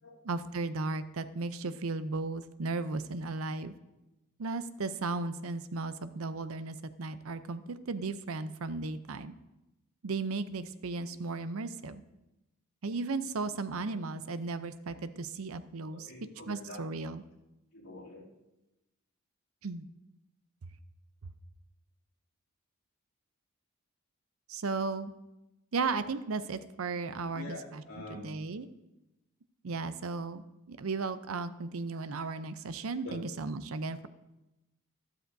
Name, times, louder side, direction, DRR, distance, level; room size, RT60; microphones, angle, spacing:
voice 1, 0.2-3.7 4.4-9.3 10.0-12.0 12.8-16.1 16.5-17.2 19.6-19.8 24.5-25.1 25.7-27.8 28.1-28.7 29.6-30.4 30.7-34.1, right 3 dB, 75° right, 12 dB, 0.6 m, -35 dB
voice 2, 15.9-16.8 17.7-18.3 27.3-28.3 33.0-33.2, left 2 dB, 80° left, -5 dB, 2.9 m, -45 dB
12.5 x 12.5 x 2.7 m, 0.96 s
head